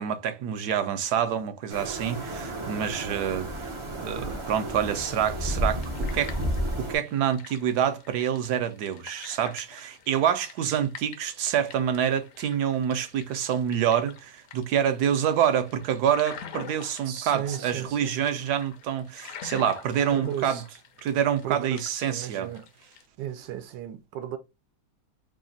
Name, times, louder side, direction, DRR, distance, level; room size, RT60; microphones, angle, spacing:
voice 1, 0.0-6.4 6.8-20.6 21.0-22.5, right 9 dB, 70° right, 1.1 m, -27 dB
sound 1, 1.7-7.0, right 1 dB, 45° right, 0.4 m, -32 dB
sound 2, 4.9-23.1, left 7 dB, 65° left, 0.8 m, -47 dB
voice 2, 17.1-18.2 20.1-20.7 21.4-22.7 23.2-24.4, right 10 dB, 90° right, 1.3 m, -35 dB
3.4 x 2.3 x 3.8 m
omnidirectional pair, 1.9 m